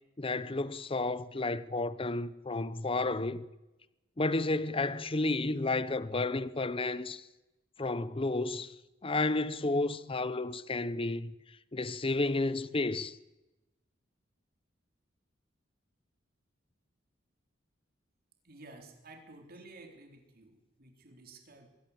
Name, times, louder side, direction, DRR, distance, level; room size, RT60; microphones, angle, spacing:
voice 1, 0.2-3.4 4.2-7.2 7.8-8.7 9.0-11.3 11.7-13.2, left 2 dB, 30° left, 0.9 m, -31 dB
voice 2, 18.4-21.7, right 2 dB, 55° right, 3.9 m, -53 dB
22.5 x 16.0 x 8.2 m
head